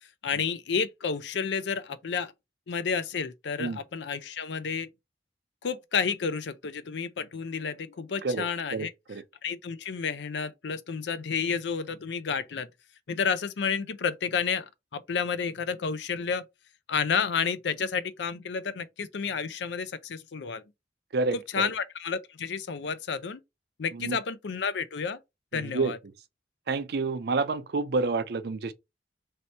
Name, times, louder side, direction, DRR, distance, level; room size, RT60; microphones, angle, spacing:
voice 1, 0.2-2.3 2.7-4.9 5.6-8.9 9.4-12.7 13.1-16.4 16.9-20.6 21.3-23.4 23.8-25.2 25.5-26.0, left 6 dB, 75° left, 0.5 m, -31 dB
voice 2, 8.2-9.2 21.1-21.7 23.9-24.2 25.5-25.9 26.7-28.7, right 3 dB, 60° right, 0.5 m, -29 dB
3.2 x 2.8 x 4.0 m
head